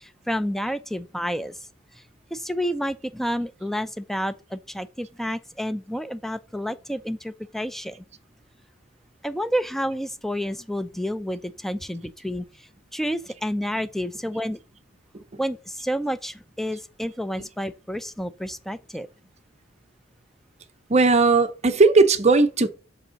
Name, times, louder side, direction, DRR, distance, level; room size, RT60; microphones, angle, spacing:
voice 1, 0.0-1.6 2.3-8.0 9.2-14.6 15.4-19.1, equal, ahead, 0.4 m, -30 dB
voice 2, 20.9-22.7, right 3 dB, 35° right, 0.7 m, -17 dB
6.3 x 5.3 x 5.1 m
head